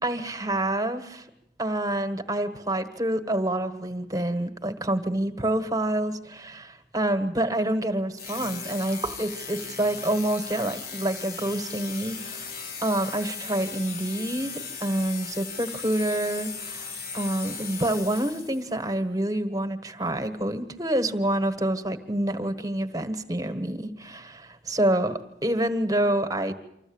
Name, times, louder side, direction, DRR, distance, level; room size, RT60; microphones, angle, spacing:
voice 1, 0.0-1.3 1.6-12.5 12.8-26.5, right 1 dB, 20° right, 8 dB, 1.5 m, -27 dB
sound 1, 8.2-18.7, left 5 dB, 55° left, 1.9 m, -37 dB
25.5 x 14.5 x 8.8 m, 0.84 s
head